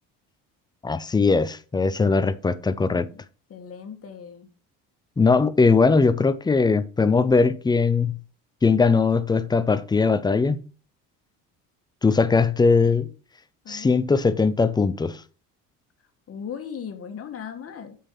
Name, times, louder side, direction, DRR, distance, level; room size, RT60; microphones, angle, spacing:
voice 1, 0.8-3.1 5.2-8.2 8.6-10.6 12.0-13.1 13.7-15.2, left 4 dB, 10° left, 0.5 m, -20 dB
voice 2, 3.5-4.5 13.6-14.0 16.3-18.0, left 7 dB, 40° left, 1.6 m, -38 dB
7.0 x 5.6 x 5.8 m
cardioid pair, 110°, 35 cm